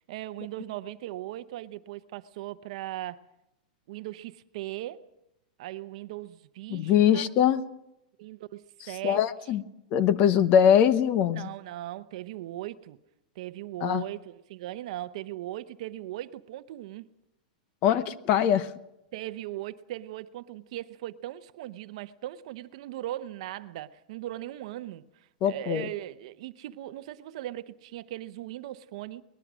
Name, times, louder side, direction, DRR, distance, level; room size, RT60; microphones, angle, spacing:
voice 1, 0.0-3.2 3.9-5.0 5.6-7.3 8.2-9.2 11.3-13.0 13.4-17.1 19.1-29.2, right 14 dB, 50° right, 0.8 m, -39 dB
voice 2, 6.7-7.6 9.0-9.6 9.9-11.5 13.8-14.0 17.8-18.7 25.4-25.9, left 9 dB, 30° left, 0.9 m, -22 dB
23.0 x 20.0 x 6.2 m
supercardioid pair, 170°, 4 cm